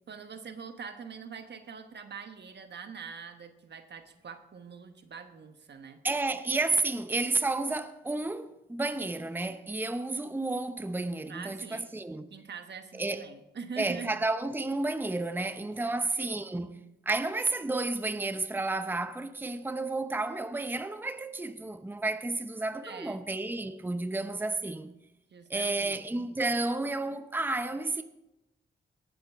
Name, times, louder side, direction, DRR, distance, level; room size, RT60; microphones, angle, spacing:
voice 1, 0.1-6.0 11.3-11.9 12.3-14.2 15.8-16.0 22.8-23.3 25.3-26.1, right 6 dB, 65° right, 1.2 m, -44 dB
voice 2, 6.0-12.3 12.9-13.3 13.8-16.7 17.1-24.9 25.5-28.0, right 2 dB, 10° right, 0.7 m, -31 dB
18.5 x 7.8 x 3.5 m
cardioid pair, 55°, 19 cm